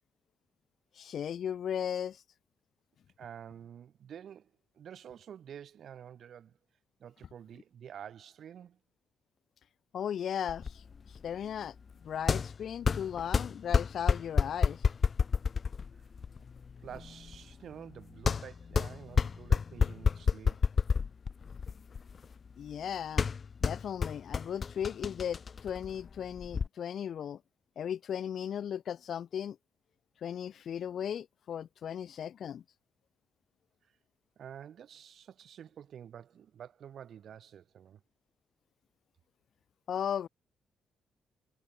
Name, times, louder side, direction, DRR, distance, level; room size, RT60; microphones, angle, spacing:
voice 1, 1.0-2.2 9.9-10.8 11.1-11.8 12.0-14.8 22.6-23.3 23.6-27.4 27.8-29.6 30.2-32.6 39.9-40.3, left 9 dB, 65° left, 1.9 m, -36 dB
voice 2, 3.2-6.6 7.0-8.8 16.8-20.7 33.8-33.9 34.4-38.0, right 9 dB, 65° right, 4.3 m, -49 dB
sound 1, 10.5-26.7, left 5 dB, 45° left, 0.8 m, -31 dB
cardioid pair, 90°, 0 cm